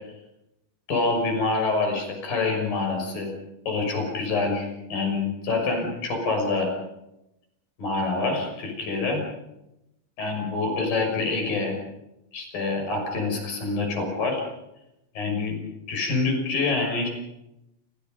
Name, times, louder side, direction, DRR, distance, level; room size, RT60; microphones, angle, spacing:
voice 1, 0.9-3.3 3.7-6.7 7.8-9.2 10.2-11.7 12.3-14.4 15.2-15.6 15.9-17.1, left 3 dB, 70° left, 4 dB, 7.9 m, -26 dB
30.0 x 24.0 x 5.3 m, 0.87 s
omnidirectional pair, 4.1 m